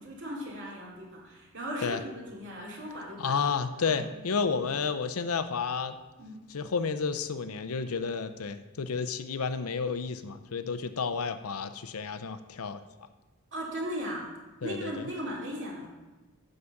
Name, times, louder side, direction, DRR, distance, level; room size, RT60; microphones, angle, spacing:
voice 1, 0.0-3.4 3.8-4.1 6.2-6.4 13.5-14.3 14.6-15.9, equal, 55° right, -2 dB, 2.6 m, -37 dB
voice 2, 3.2-6.0 6.5-12.8 14.6-15.1, left 5 dB, 85° left, 11 dB, 0.6 m, -31 dB
9.6 x 5.0 x 7.0 m, 1.2 s
head